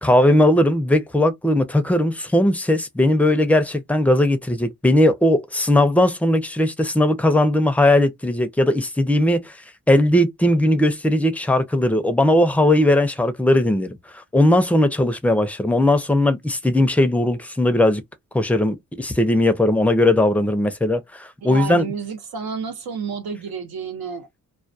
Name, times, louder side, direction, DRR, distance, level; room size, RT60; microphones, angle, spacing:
voice 1, 0.0-9.5 9.9-18.0 18.3-21.9, left 1 dB, 5° left, 0.4 m, -18 dB
voice 2, 21.4-24.3, right 5 dB, 85° right, 0.8 m, -30 dB
2.2 x 2.2 x 2.6 m
cardioid pair, 85°, 36 cm